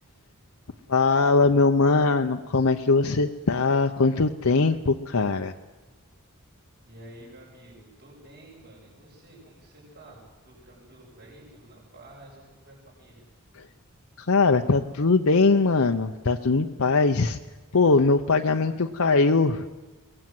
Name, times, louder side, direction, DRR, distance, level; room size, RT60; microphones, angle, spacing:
voice 1, 0.9-5.5 14.2-17.4 17.7-19.7, left 3 dB, 70° left, 5 dB, 0.8 m, -21 dB
voice 2, 6.8-13.2, right 1 dB, 50° right, -4 dB, 6.8 m, -50 dB
23.0 x 19.0 x 7.8 m, 1.2 s
head